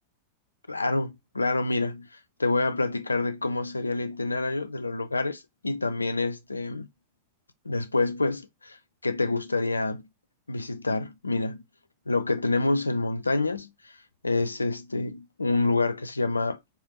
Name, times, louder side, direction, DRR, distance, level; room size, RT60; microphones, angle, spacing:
voice 1, 0.7-6.9 7.7-8.8 9.0-10.1 10.5-11.6 12.1-13.9 14.2-16.6, left 3 dB, 80° left, 0.4 m, -27 dB
3.3 x 2.9 x 2.8 m
figure-of-eight pair, 90°, 0 cm